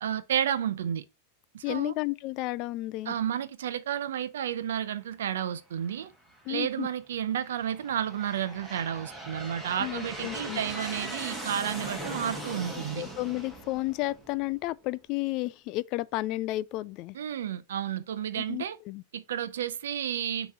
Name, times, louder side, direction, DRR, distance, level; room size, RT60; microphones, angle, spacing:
voice 1, 0.0-1.0 1.5-1.9 3.1-6.1 6.5-13.1 17.1-18.8 19.1-20.5, right 9 dB, 85° right, 0.6 m, -31 dB
voice 2, 1.6-3.1 6.5-6.9 9.8-10.6 13.0-17.2 18.4-19.0, left 19 dB, 45° left, 0.3 m, -32 dB
Aircraft, 5.9-6.4 7.1-14.7, right 1 dB, 5° right, 1.6 m, -40 dB
5.9 x 3.1 x 5.5 m
supercardioid pair, 135°, 0 cm